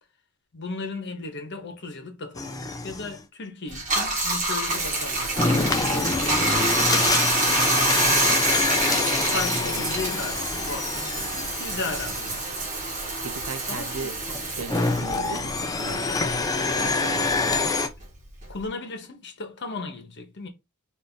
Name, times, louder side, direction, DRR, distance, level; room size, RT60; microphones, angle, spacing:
voice 1, 0.5-7.3 8.1-8.7 9.2-12.9 13.7-14.2 18.5-20.5, left 3 dB, 55° left, 1.0 m, -36 dB
sound 1, 2.4-3.2 5.3-12.4 14.2-17.9, left 3 dB, 15° left, 0.5 m, -26 dB
Bathtub (filling or washing), 3.7-16.5 16.8-18.7, right 2 dB, 35° right, 1.4 m, -27 dB
voice 2, 13.2-14.2 14.5-16.4 16.8-17.5, right 5 dB, 90° right, 0.5 m, -37 dB
3.5 x 2.6 x 3.9 m
head